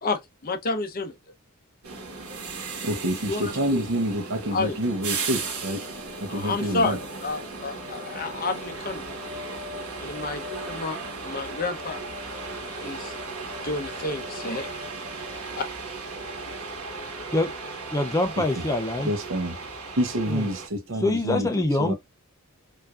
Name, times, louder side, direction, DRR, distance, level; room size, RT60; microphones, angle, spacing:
voice 1, 0.0-1.1 3.3-3.8 4.5-4.8 6.3-7.0 7.2-9.0 10.0-11.0 11.2-12.0 12.8-13.1 13.6-14.7, left 3 dB, 40° left, 0.7 m, -30 dB
sound 1, 1.8-20.7, right 3 dB, 85° right, 1.4 m, -36 dB
voice 2, 2.8-5.8 6.2-7.0 18.6-18.7 19.0-19.6 19.9-21.5 21.8-21.9, equal, 60° right, 0.8 m, -27 dB
voice 3, 17.9-19.1 20.2-20.5 20.9-21.9, left 2 dB, 15° left, 0.4 m, -25 dB
4.5 x 2.6 x 2.4 m
head